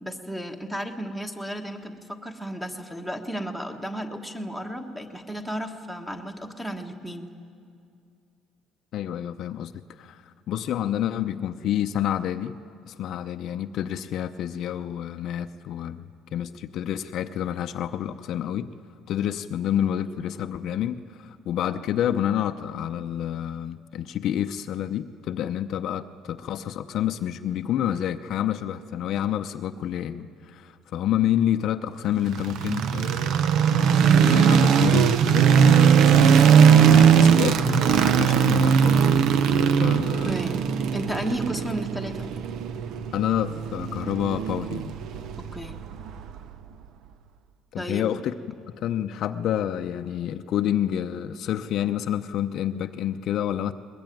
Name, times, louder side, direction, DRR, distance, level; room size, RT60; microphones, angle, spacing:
voice 1, 0.0-7.3 40.2-40.6 40.9-42.3 45.4-45.7 47.8-48.1, right 1 dB, 5° right, 5 dB, 1.4 m, -33 dB
voice 2, 8.9-12.6 12.9-18.7 19.1-33.4 33.8-39.1 39.8-40.4 43.1-44.9 47.7-48.3 48.7-53.7, left 10 dB, 55° left, 8 dB, 0.7 m, -28 dB
sound 1, 32.3-46.4, right 7 dB, 60° right, 0.8 m, -19 dB
21.5 x 21.0 x 9.2 m, 2.4 s
cardioid pair, 150°, 0 cm